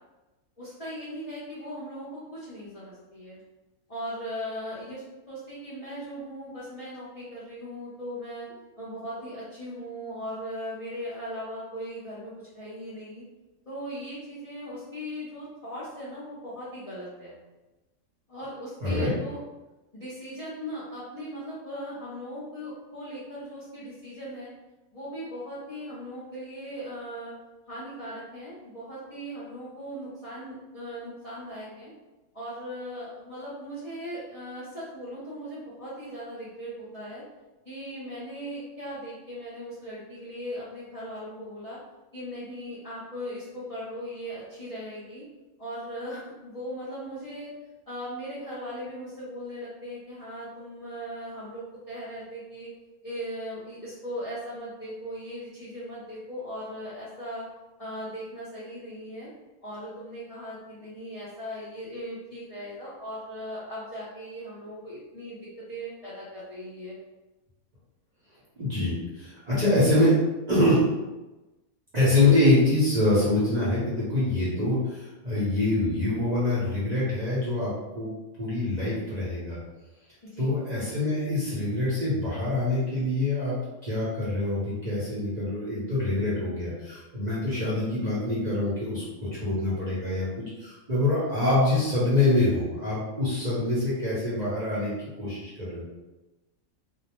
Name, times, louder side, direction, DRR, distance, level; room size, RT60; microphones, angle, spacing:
voice 1, 0.6-3.4 3.9-8.5 8.8-13.2 13.7-17.4 18.3-19.4 19.9-24.5 24.9-27.3 27.7-31.9 32.3-37.2 37.6-41.8 42.1-45.2 45.6-47.5 47.9-52.7 53.0-57.5 57.8-59.3 59.6-65.4 65.7-66.9 80.3-80.5, equal, 40° left, -11 dB, 0.5 m, -38 dB
voice 2, 18.8-19.1 68.6-70.2 70.5-70.8 71.9-78.1 78.4-79.6 80.4-83.6 83.8-94.9 95.2-95.8, left 2 dB, 40° right, -10 dB, 0.7 m, -25 dB
2.5 x 2.0 x 2.9 m, 1.1 s
omnidirectional pair, 1.5 m